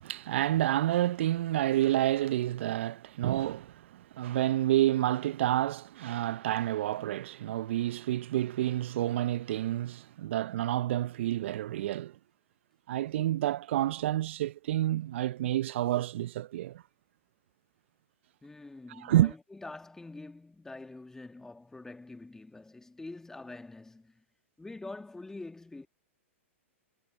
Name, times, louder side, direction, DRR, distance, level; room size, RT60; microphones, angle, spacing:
voice 1, 0.0-12.1 12.9-16.8 19.0-19.3, right 13 dB, 60° right, 0.5 m, -29 dB
voice 2, 18.4-24.2 24.6-25.9, left 2 dB, 5° left, 2.0 m, -45 dB
hypercardioid pair, 115°, 7 cm